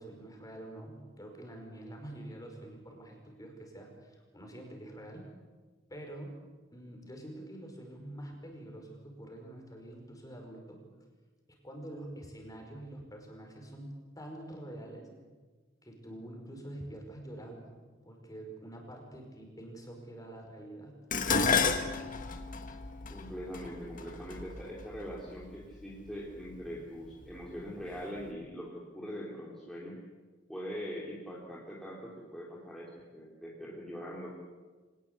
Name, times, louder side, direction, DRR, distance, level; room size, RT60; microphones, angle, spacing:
voice 1, 0.0-5.3 5.9-6.4 6.7-10.8 11.6-15.1 15.8-17.7 18.0-21.0, right 1 dB, 20° left, 2 dB, 5.3 m, -46 dB
Dishes pots and pans, 21.1-25.5 26.4-26.8 27.1-28.0 28.2-28.3, left 5 dB, 45° left, 1.7 m, -32 dB
voice 2, 23.1-30.0 30.5-34.3, equal, ahead, -5 dB, 3.4 m, -42 dB
25.0 x 19.0 x 8.3 m, 1.3 s
head